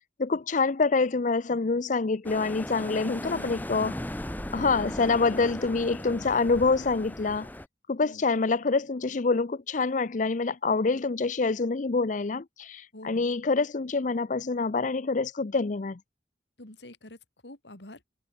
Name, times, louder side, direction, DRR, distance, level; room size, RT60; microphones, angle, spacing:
voice 1, 0.2-4.0 4.5-7.5 7.9-16.0, left 4 dB, 45° left, 0.6 m, -26 dB
sound 1, 2.2-7.7, left 1 dB, 10° left, 1.1 m, -37 dB
voice 2, 3.2-3.6 8.0-8.2 12.9-13.3 16.6-17.2 17.4-18.0, left 1 dB, 75° left, 3.7 m, -45 dB
head